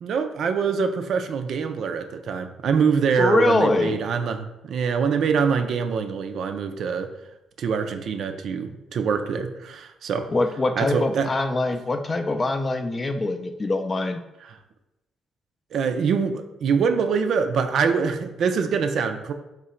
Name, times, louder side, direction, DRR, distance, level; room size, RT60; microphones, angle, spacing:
voice 1, 0.0-7.1 7.6-10.3 10.8-11.3 15.7-19.3, right 6 dB, 65° right, 7 dB, 0.4 m, -24 dB
voice 2, 3.2-4.0 10.3-14.2, left 2 dB, 30° left, 7 dB, 0.4 m, -23 dB
3.7 x 3.0 x 4.3 m, 0.95 s
cardioid pair, 90°, 0 cm